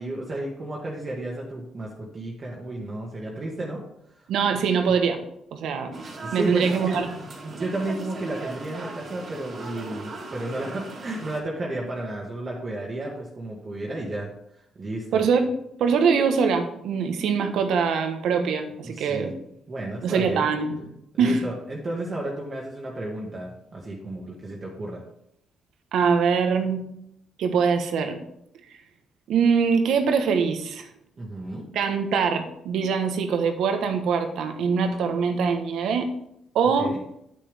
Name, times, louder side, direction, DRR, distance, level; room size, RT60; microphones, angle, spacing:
voice 1, 0.0-3.8 4.5-4.6 6.1-14.3 14.8-15.3 18.8-19.3 19.7-20.4 21.1-25.0 31.2-31.6 36.8-37.0, right 1 dB, 35° right, -3 dB, 1.9 m, -32 dB
voice 2, 4.3-5.2 5.5-5.9 6.3-7.1 15.1-15.5 15.8-19.3 20.0-20.9 21.2-21.4 25.9-26.8 27.4-28.2 29.3-30.9 31.7-36.1 36.5-37.0, right 6 dB, 75° right, 6 dB, 1.3 m, -23 dB
sound 1, 5.9-11.4, right 3 dB, 50° right, 2.3 m, -38 dB
8.6 x 8.4 x 3.6 m, 0.76 s
cardioid pair, 90°, 0 cm